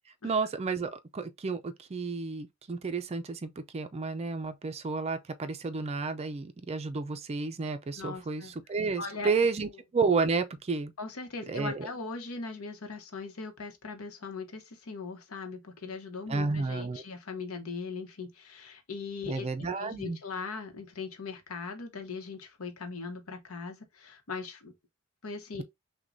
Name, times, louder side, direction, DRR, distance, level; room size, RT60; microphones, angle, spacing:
voice 1, 0.2-10.9 11.5-11.9 16.3-17.0 19.3-20.2, right 4 dB, 30° right, 0.4 m, -31 dB
voice 2, 8.0-8.5 9.0-9.3 11.0-24.7 25.2-25.6, left 4 dB, 80° left, 0.9 m, -40 dB
6.0 x 2.2 x 2.6 m
head